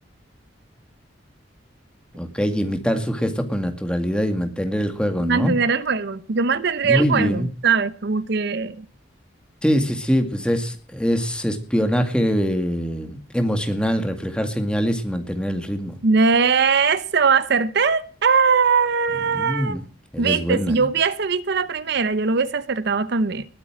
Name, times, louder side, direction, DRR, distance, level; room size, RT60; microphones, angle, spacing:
voice 1, 2.1-5.6 6.8-7.5 9.6-15.9 19.3-19.8 20.1-20.8, equal, 5° left, 2.1 m, -23 dB
voice 2, 5.2-8.9 16.0-19.8 20.2-23.5, right 5 dB, 60° right, 0.7 m, -20 dB
20.0 x 8.3 x 6.2 m
head